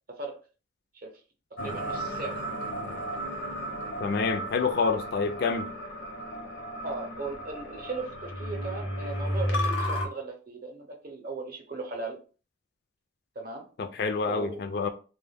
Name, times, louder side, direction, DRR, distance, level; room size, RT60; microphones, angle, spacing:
sound 1, 1.6-10.1, equal, 80° left, 0.7 m, -33 dB
voice 1, 1.6-2.4 6.8-12.2 13.4-13.7 14.2-14.7, right 3 dB, 45° right, 0.6 m, -37 dB
voice 2, 4.0-5.7 13.8-14.9, left 4 dB, 55° left, 0.3 m, -27 dB
2.1 x 2.1 x 3.3 m
head